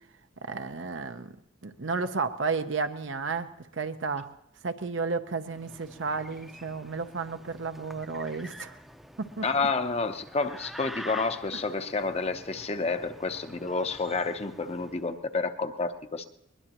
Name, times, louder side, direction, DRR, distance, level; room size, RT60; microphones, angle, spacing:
voice 1, 0.5-1.3 1.6-3.5 3.8-4.3 4.6-8.7 9.2-9.7, right 4 dB, 75° right, 7 dB, 0.8 m, -32 dB
sound 1, 5.4-15.1, equal, ahead, 0.6 m, -47 dB
voice 2, 9.4-16.3, left 3 dB, 35° left, 8 dB, 0.8 m, -30 dB
21.0 x 21.0 x 3.0 m, 0.82 s
head